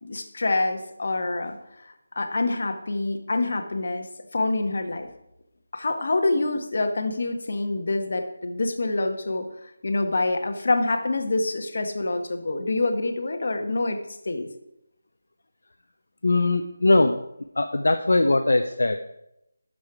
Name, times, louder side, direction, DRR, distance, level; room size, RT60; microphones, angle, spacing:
voice 1, 0.0-1.6 1.8-4.1 4.3-5.1 5.7-9.4 9.8-14.0 14.2-14.5, left 2 dB, 50° left, 5 dB, 1.2 m, -26 dB
voice 2, 16.2-17.2 17.6-19.0, left 2 dB, 70° left, 6 dB, 0.6 m, -20 dB
8.4 x 6.5 x 4.8 m, 0.83 s
figure-of-eight pair, 175°, 0 cm